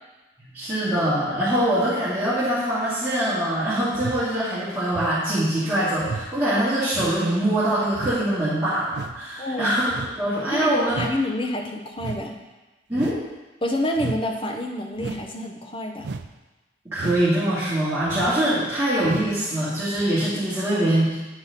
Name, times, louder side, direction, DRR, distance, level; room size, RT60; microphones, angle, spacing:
voice 1, 0.4-9.9 10.2-11.0 12.9-13.2 16.9-21.3, right 1 dB, 10° right, -14 dB, 2.1 m, -23 dB
sound 1, 3.9-4.3 4.9-5.2 6.0-6.3 6.9-7.2 7.9-8.2 8.9-9.2 9.9-10.2 10.9-11.2 12.0-12.2 12.9-13.3 13.9-14.2 15.0-15.3 16.0-16.3 16.9-17.3 18.1-18.4 19.0-19.3 20.0-20.1, right 4 dB, 65° right, 0.4 m, -33 dB
voice 2, 9.4-9.8 10.5-12.3 13.6-16.1, left 1 dB, 30° left, 2 dB, 0.7 m, -28 dB
8.9 x 4.7 x 4.1 m, 1.1 s
head